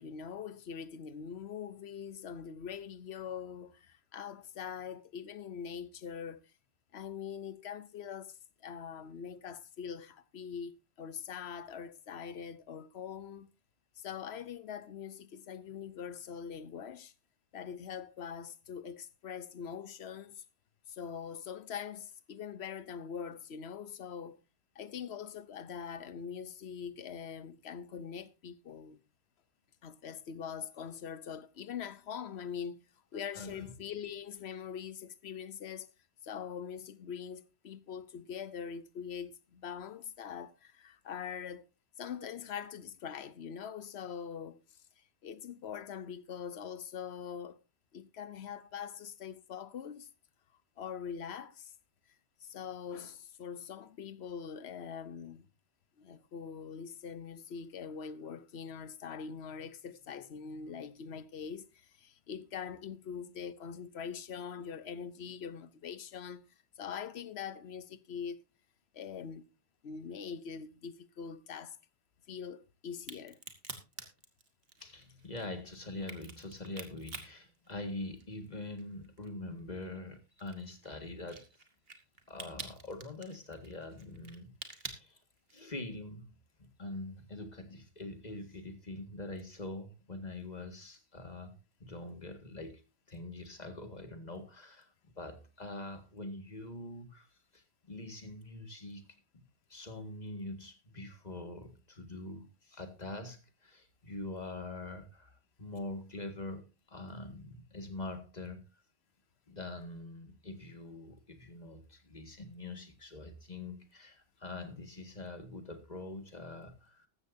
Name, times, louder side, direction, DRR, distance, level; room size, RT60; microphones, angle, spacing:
voice 1, 0.0-6.4 6.9-8.4 8.6-13.5 14.0-17.1 17.5-20.4 20.9-24.4 24.8-29.0 29.8-32.8 33.1-35.9 36.2-41.6 42.0-44.6 45.2-47.6 47.9-50.1 50.8-51.7 52.4-55.5 56.0-66.4 66.8-68.4 68.9-69.4 69.8-71.8 72.3-73.4, left 7 dB, 80° left, 1.1 m, -43 dB
voice 2, 33.3-33.7 74.8-81.5 82.3-85.2 85.5-86.3 86.6-91.5 91.8-92.8 93.1-99.1 99.3-99.4 99.7-108.7 109.5-117.1, left 2 dB, 40° left, 2.0 m, -44 dB
Crack, 72.9-78.4 78.8-85.8, right 4 dB, 65° right, 2.0 m, -48 dB
15.0 x 13.0 x 2.7 m
omnidirectional pair, 1.1 m